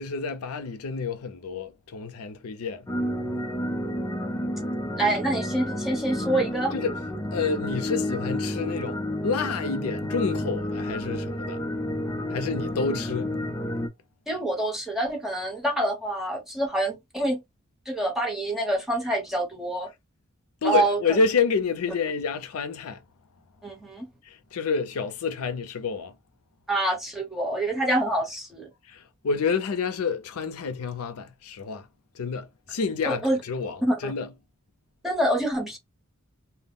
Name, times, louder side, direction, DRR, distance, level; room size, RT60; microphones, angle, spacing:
voice 1, 0.0-2.9 6.7-6.9 7.3-11.6 12.3-13.3 20.6-23.0 24.2-26.1 28.9-31.9 32.1-34.3, left 5 dB, 90° left, 0.5 m, -29 dB
sound 1, 2.9-13.9, left 1 dB, 15° left, 0.4 m, -30 dB
voice 2, 5.0-6.8 14.3-17.4 17.9-19.9 20.6-21.2 23.6-24.1 26.7-28.7 33.0-33.4 33.8-34.1 35.0-35.8, right 1 dB, ahead, 0.9 m, -26 dB
2.2 x 2.0 x 3.6 m
head